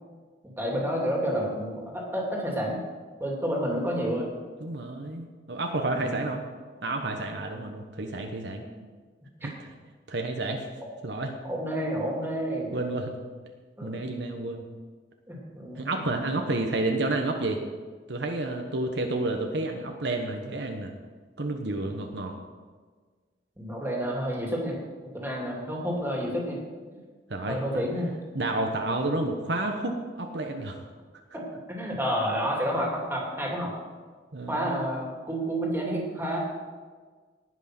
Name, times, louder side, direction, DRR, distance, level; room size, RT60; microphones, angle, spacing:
voice 1, 0.4-2.8 3.2-4.3 5.9-6.2 11.4-12.8 13.8-14.0 15.3-16.1 23.6-24.8 25.0-26.6 27.5-28.1 31.7-33.7 34.5-36.4, equal, 10° right, -2 dB, 2.6 m, -30 dB
voice 2, 4.6-6.4 6.8-8.6 9.4-9.7 10.1-10.6 11.0-11.3 12.7-13.2 13.8-14.7 15.8-17.6 18.1-20.9 21.4-22.3 27.3-27.8 28.3-30.8 34.3-34.8, right 2 dB, 65° right, 3 dB, 1.1 m, -30 dB
18.5 x 6.3 x 6.1 m, 1.5 s
head